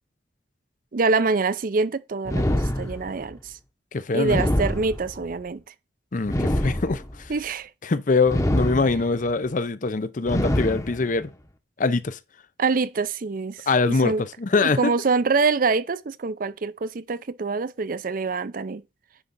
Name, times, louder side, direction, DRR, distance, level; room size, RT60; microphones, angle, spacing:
voice 1, 0.9-3.5 4.1-5.6 7.3-7.7 12.6-14.2 14.6-18.8, right 4 dB, 50° right, 0.5 m, -25 dB
sound 1, 2.3-3.3 4.2-5.3 6.2-7.3 8.3-9.3 10.2-11.3, left 1 dB, 20° left, 0.9 m, -25 dB
voice 2, 3.9-4.4 6.1-7.3 7.8-11.3 11.8-12.2 13.7-14.8, left 3 dB, 45° left, 0.6 m, -23 dB
9.9 x 3.8 x 5.4 m
head